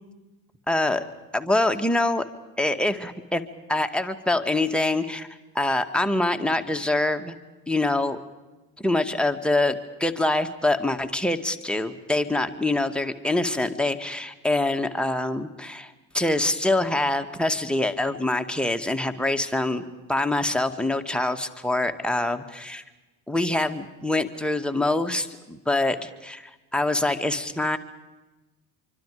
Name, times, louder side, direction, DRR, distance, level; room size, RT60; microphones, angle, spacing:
voice 1, 0.7-1.0 1.3-2.2 2.6-3.4 3.7-5.3 5.5-7.4 7.7-8.2 8.8-19.8 20.1-22.8 23.3-27.8, left 2 dB, ahead, 5 dB, 2.2 m, -25 dB
27.0 x 24.5 x 5.1 m, 1.1 s
hypercardioid pair, 55°, 48 cm